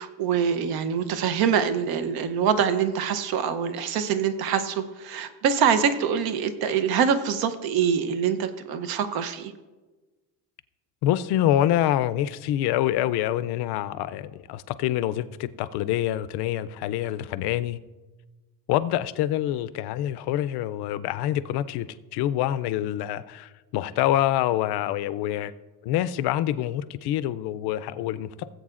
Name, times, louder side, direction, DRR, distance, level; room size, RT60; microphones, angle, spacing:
voice 1, 0.0-9.5, right 7 dB, 65° right, 11 dB, 0.8 m, -24 dB
voice 2, 11.0-17.8 18.7-25.5 25.8-28.4, left 12 dB, 75° left, 14 dB, 0.5 m, -26 dB
18.0 x 7.9 x 2.5 m, 1.2 s
cardioid pair, 165°, 40 cm